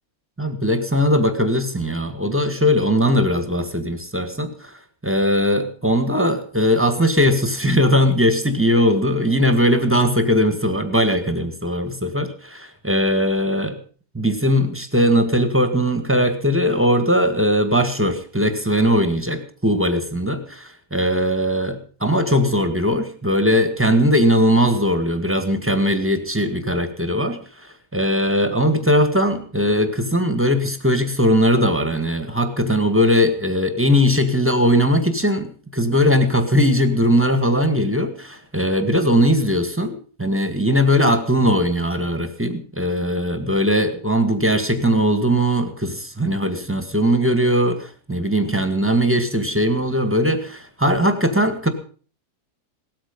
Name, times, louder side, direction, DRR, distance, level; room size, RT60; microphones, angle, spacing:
voice 1, 0.4-4.8 5.0-13.8 14.1-51.7, equal, 10° right, 9 dB, 1.9 m, -19 dB
18.0 x 13.5 x 5.4 m, 0.41 s
omnidirectional pair, 1.7 m